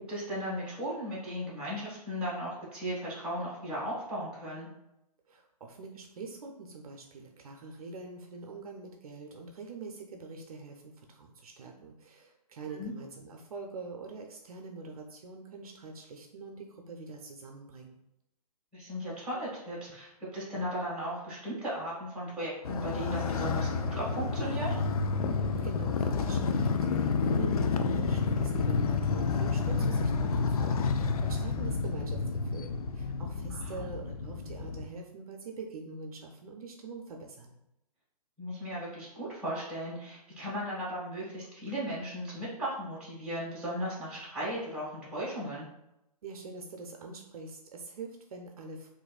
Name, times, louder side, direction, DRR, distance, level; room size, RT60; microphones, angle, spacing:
voice 1, 0.1-4.7 12.7-12.9 18.7-24.8 33.5-33.8 38.4-45.6, equal, 5° right, -7 dB, 1.5 m, -36 dB
voice 2, 5.3-18.0 25.2-37.5 46.2-48.9, right 4 dB, 65° right, 2 dB, 0.6 m, -44 dB
Motorcycle, 22.6-34.9, left 4 dB, 65° left, 0.4 m, -30 dB
4.0 x 2.6 x 2.4 m, 0.87 s
hypercardioid pair, 155°, 21 cm